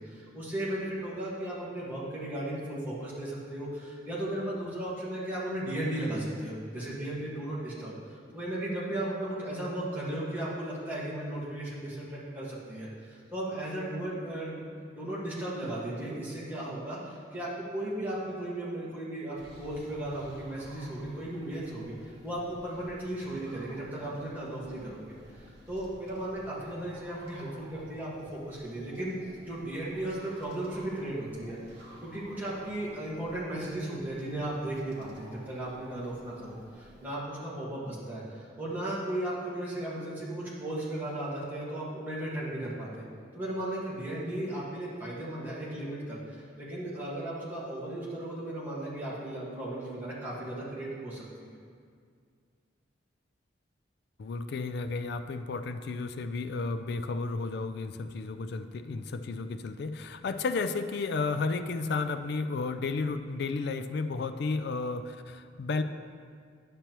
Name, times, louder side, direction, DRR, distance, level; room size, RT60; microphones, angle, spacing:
voice 1, 0.0-14.6 14.9-28.1 28.4-29.1 29.4-31.6 32.0-43.0 43.3-51.5, right 1 dB, 10° right, -8 dB, 1.6 m, -36 dB
sound 1, 19.3-37.2, equal, 55° right, 1.3 m, -53 dB
voice 2, 54.2-65.8, left 3 dB, 55° left, 10 dB, 0.3 m, -32 dB
10.0 x 6.7 x 3.0 m, 2.1 s
head